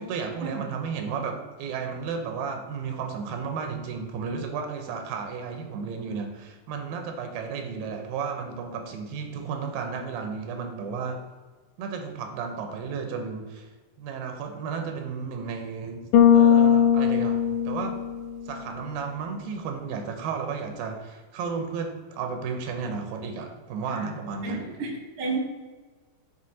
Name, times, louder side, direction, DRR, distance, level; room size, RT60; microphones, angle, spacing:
voice 1, 0.0-11.2 11.8-13.7 14.0-16.0 16.3-18.0 18.5-24.6, right 5 dB, 85° right, 4 dB, 2.5 m, -33 dB
Bass guitar, 16.1-18.5, left 9 dB, 90° left, 2.4 m, -19 dB
voice 2, 24.4-25.4, right 4 dB, 45° right, -2 dB, 1.3 m, -32 dB
6.3 x 4.6 x 4.1 m, 1.3 s
omnidirectional pair, 4.2 m